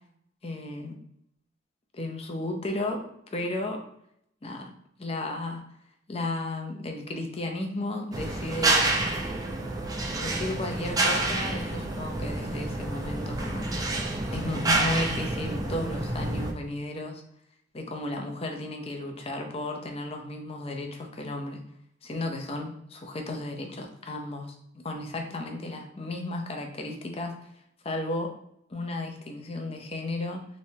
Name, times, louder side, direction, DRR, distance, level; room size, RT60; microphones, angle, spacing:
voice 1, 0.4-0.9 1.9-3.0 3.3-3.8 4.4-4.7 5.0-5.6 6.1-8.9 10.1-17.2 17.7-21.6 22.0-27.3 27.8-28.3 28.7-30.4, left 2 dB, 30° left, 3 dB, 0.6 m, -34 dB
sound 1, 8.1-16.5, right 2 dB, 20° right, 0.4 m, -28 dB
3.2 x 3.1 x 2.8 m, 0.74 s
head